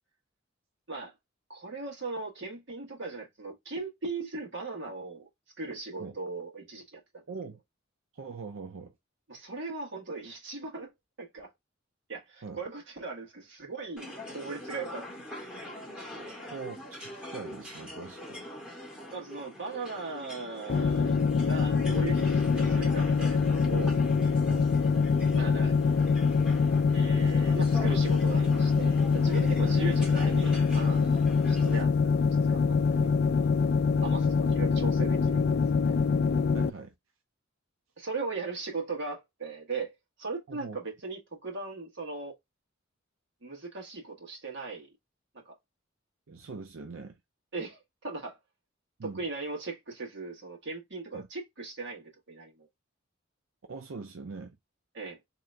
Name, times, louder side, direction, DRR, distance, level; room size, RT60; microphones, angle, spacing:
voice 1, 1.5-5.3 5.6-7.2 9.3-10.9 11.2-11.5 12.1-15.1 16.1-16.6 19.1-21.1 21.5-24.0 25.3-25.7 26.9-32.1 32.5-33.0 33.4-33.5 34.0-35.5 35.9-36.0 38.0-39.9 40.2-42.3 43.4-44.9 45.4-45.5 47.5-48.4 49.0-52.7 54.9-55.2, right 3 dB, 60° right, 1.6 m, -38 dB
voice 2, 7.3-7.6 8.1-8.9 12.4-12.6 16.4-18.4 24.5-24.7 29.6-29.9 33.0-33.2 33.9-34.1 36.5-36.9 40.5-40.8 46.3-47.2 49.0-49.2 51.1-51.3 53.7-54.6, right 4 dB, 85° right, 0.6 m, -42 dB
sound 1, 14.0-31.8, left 1 dB, 5° right, 1.9 m, -44 dB
sound 2, 20.7-36.7, left 5 dB, 55° left, 0.4 m, -24 dB
3.8 x 3.0 x 3.3 m
head